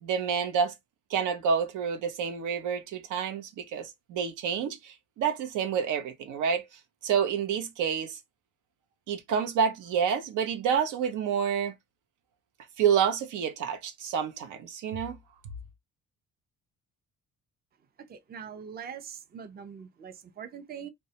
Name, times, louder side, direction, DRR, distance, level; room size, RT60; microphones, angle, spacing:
voice 1, 0.0-0.7 1.1-6.7 7.0-8.2 9.1-11.7 12.8-15.2, right 7 dB, 80° right, 0.6 m, -28 dB
voice 2, 18.1-20.9, right 7 dB, 30° right, 0.5 m, -42 dB
2.2 x 2.1 x 2.7 m
cardioid pair, 90°, 30 cm